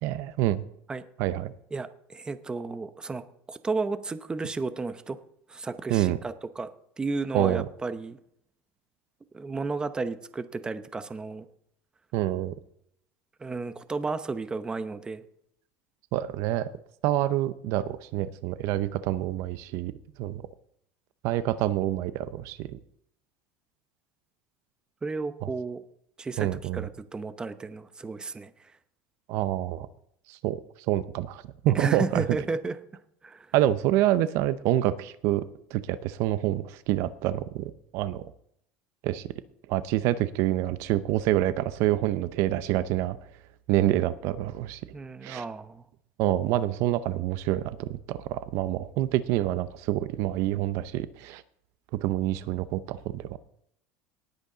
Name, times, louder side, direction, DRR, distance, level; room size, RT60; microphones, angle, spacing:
voice 1, 0.0-0.6 1.2-1.5 5.9-6.2 7.3-7.6 12.1-12.5 16.1-16.7 17.0-19.9 20.2-20.4 21.2-22.8 25.4-25.5 26.4-26.9 29.3-29.9 30.3-30.6 30.9-32.2 33.5-35.4 35.7-38.3 39.0-39.2 39.7-43.2 43.7-44.8 45.2-45.4 46.2-51.4 52.0-53.4, right 14 dB, 65° right, 15 dB, 0.6 m, -27 dB
voice 2, 1.7-5.2 5.5-6.7 7.0-8.2 9.3-11.5 13.4-15.2 25.0-25.8 26.2-28.7 31.7-32.8 33.2-33.5 44.9-45.8, right 3 dB, 15° right, 12 dB, 0.8 m, -33 dB
18.5 x 8.1 x 3.9 m, 0.71 s
supercardioid pair, 125°, 5 cm